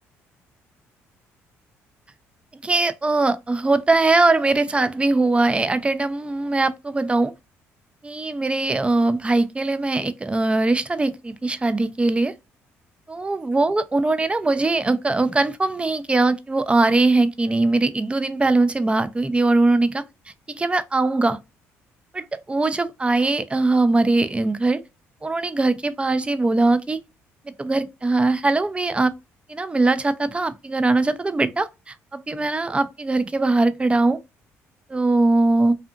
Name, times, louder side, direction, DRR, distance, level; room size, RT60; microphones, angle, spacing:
voice 1, 2.6-7.3 8.0-12.3 13.1-20.0 20.5-21.4 22.1-24.8 25.2-27.0 27.6-29.1 29.5-34.2 34.9-35.8, right 2 dB, 20° right, 0.4 m, -21 dB
2.7 x 2.4 x 2.3 m
supercardioid pair, 60°, 6 cm